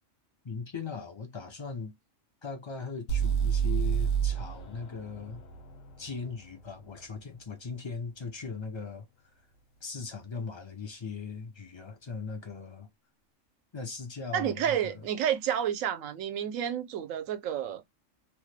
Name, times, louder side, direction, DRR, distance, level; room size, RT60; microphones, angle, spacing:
voice 1, 0.4-1.9 2.4-5.4 6.0-9.1 9.8-12.9 13.7-15.1, left 4 dB, 45° left, 0.3 m, -39 dB
sound 1, 3.1-7.0, right 8 dB, 75° left, 1.2 m, -30 dB
voice 2, 14.3-17.8, right 9 dB, 85° right, 1.0 m, -30 dB
2.9 x 2.1 x 3.1 m
omnidirectional pair, 1.4 m